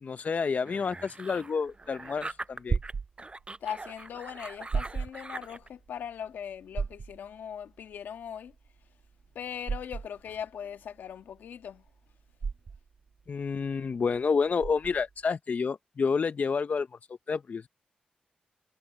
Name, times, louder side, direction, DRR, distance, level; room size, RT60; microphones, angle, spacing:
voice 1, 0.0-2.8 13.3-16.9 17.3-17.7, left 5 dB, 55° left, 0.7 m, -29 dB
sound 1, 0.6-2.9 3.2-5.7, right 2 dB, 35° right, 7.5 m, -42 dB
sound 2, 1.7-15.2, right 5 dB, 60° right, 2.3 m, -36 dB
voice 2, 3.6-8.5 9.3-11.8, left 8 dB, 85° left, 1.5 m, -40 dB
supercardioid pair, 45°, 3 cm